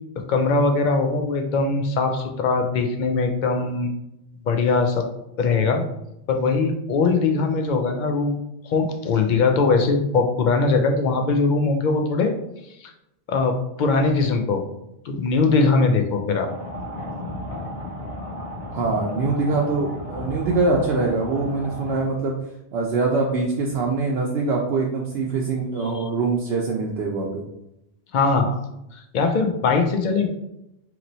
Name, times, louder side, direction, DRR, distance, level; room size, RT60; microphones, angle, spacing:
voice 1, 0.3-3.9 4.5-5.1 5.4-5.8 6.3-8.4 8.6-12.3 12.8-12.9 13.3-14.6 15.1-16.5 25.9-26.0 28.1-28.6 28.9-30.3, left 4 dB, 55° left, 5 dB, 0.6 m, -21 dB
sound 1, 16.5-22.0, left 1 dB, 75° left, 1.0 m, -34 dB
voice 2, 18.7-22.3 22.7-27.4, right 3 dB, 75° right, -2 dB, 0.9 m, -23 dB
3.0 x 2.9 x 3.9 m, 0.84 s
omnidirectional pair, 1.1 m